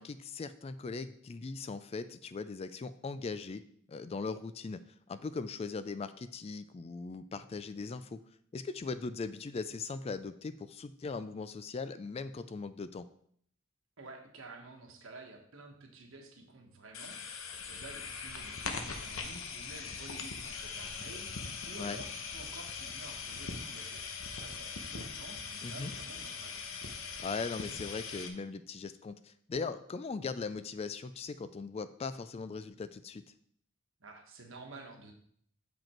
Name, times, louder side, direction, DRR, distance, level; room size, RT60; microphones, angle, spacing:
voice 1, 0.0-3.6 3.9-4.8 5.1-8.2 8.5-13.1 21.8-22.0 25.6-25.9 27.2-33.2, left 4 dB, 30° left, 13 dB, 0.3 m, -39 dB
voice 2, 14.0-26.7 34.0-35.1, right 2 dB, 70° right, 2 dB, 1.4 m, -51 dB
sound 1, 16.9-28.3, left 5 dB, 75° left, 0.9 m, -41 dB
7.6 x 5.1 x 4.4 m, 0.65 s
head